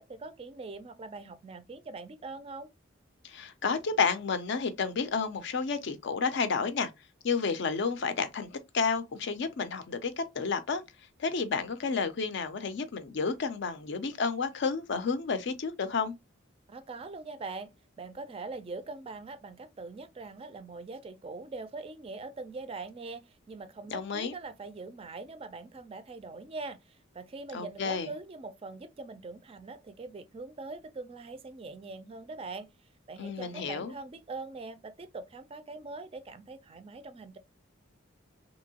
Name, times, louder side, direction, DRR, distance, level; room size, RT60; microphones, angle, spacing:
voice 1, 0.0-2.7 16.7-32.7 33.1-37.4, right 3 dB, 30° right, 0.3 m, -42 dB
voice 2, 3.2-6.9 7.2-10.8 11.2-16.1 23.9-24.3 27.5-28.1 33.2-33.9, left 5 dB, 60° left, 0.5 m, -31 dB
2.9 x 2.7 x 2.8 m
head